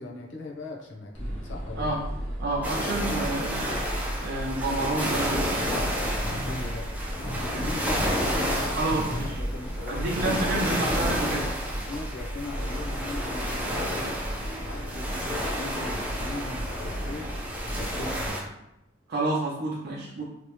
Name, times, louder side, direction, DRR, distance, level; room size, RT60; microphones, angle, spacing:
voice 1, 0.0-1.9 6.1-6.9 7.3-8.9 9.3-10.6 11.9-14.1 14.6-17.3 17.6-18.5, left 2 dB, 65° left, 0 dB, 0.7 m, -39 dB
sound 1, 1.1-18.3, equal, 10° left, 1.2 m, -35 dB
voice 2, 2.4-3.9 4.2-5.4 8.8-9.4 9.9-11.5 19.1-20.2, right 2 dB, 50° right, -5 dB, 0.6 m, -29 dB
sound 2, 2.6-18.4, equal, 10° right, 0.6 m, -31 dB
sound 3, 6.1-10.4 10.6-11.4, left 1 dB, 40° left, 1.4 m, -38 dB
3.2 x 2.9 x 3.0 m, 0.85 s
head